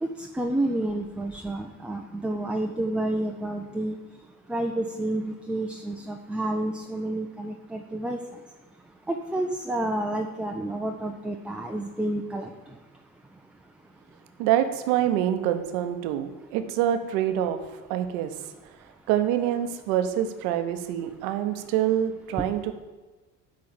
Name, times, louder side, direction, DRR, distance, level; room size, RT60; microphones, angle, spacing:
voice 1, 0.0-4.0 4.5-8.2 9.1-12.5 22.4-22.5, right 1 dB, ahead, 3 dB, 0.6 m, -29 dB
voice 2, 14.4-18.3 19.1-22.7, right 11 dB, 65° right, 8 dB, 1.0 m, -26 dB
10.5 x 3.8 x 7.1 m, 1.2 s
hypercardioid pair, 65°, 45 cm